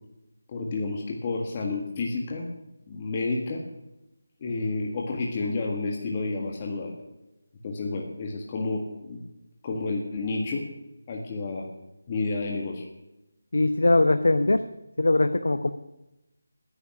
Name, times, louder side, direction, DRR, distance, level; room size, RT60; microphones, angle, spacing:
voice 1, 0.5-2.5 2.9-3.6 4.4-7.0 7.6-9.2 9.6-10.6 11.1-11.6 12.1-12.8, left 3 dB, 25° left, -1 dB, 1.6 m, -30 dB
voice 2, 13.5-14.6 15.0-15.7, left 2 dB, 80° left, 9 dB, 1.0 m, -21 dB
12.5 x 10.0 x 9.9 m, 0.93 s
figure-of-eight pair, 170°, 0 cm